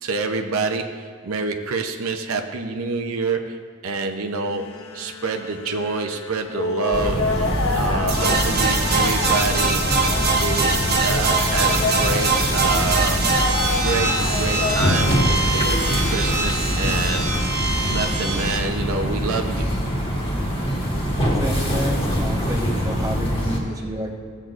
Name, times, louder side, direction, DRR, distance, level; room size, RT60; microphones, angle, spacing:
voice 1, 0.0-7.3 7.7-9.9 10.4-13.2 13.8-17.3 17.8-19.7, right 4 dB, 75° right, 5 dB, 0.6 m, -27 dB
sound 1, 4.5-17.4, left 3 dB, 70° left, 0.8 m, -29 dB
sound 2, 6.9-23.6, equal, 25° left, 1.6 m, -24 dB
sound 3, 8.1-18.6, right 3 dB, 45° right, 1.0 m, -23 dB
voice 2, 21.4-24.1, equal, 15° right, 0 dB, 0.9 m, -29 dB
15.5 x 7.5 x 2.5 m, 2.1 s
head